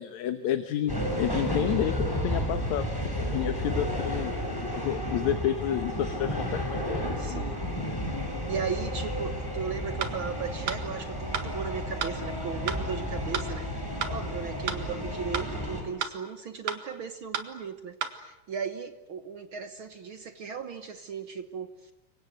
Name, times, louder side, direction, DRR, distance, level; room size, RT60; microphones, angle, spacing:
voice 1, 0.0-2.9 3.3-7.5, left 11 dB, 75° left, 9 dB, 2.4 m, -30 dB
sound 1, 0.9-15.8, equal, 5° left, 5.2 m, -32 dB
voice 2, 7.2-7.6 8.5-21.9, right 6 dB, 55° right, 9 dB, 1.6 m, -37 dB
sound 2, 10.0-10.1 10.7-10.8 11.3-11.5 12.0-12.1 12.7-12.8 13.3-13.5 14.0-14.1 14.7-14.8 15.3-15.5 16.0-16.1 16.7-16.8 17.3-17.5 18.0-18.1, right 8 dB, 90° right, 3.1 m, -31 dB
29.0 x 24.0 x 8.0 m, 0.94 s
omnidirectional pair, 3.4 m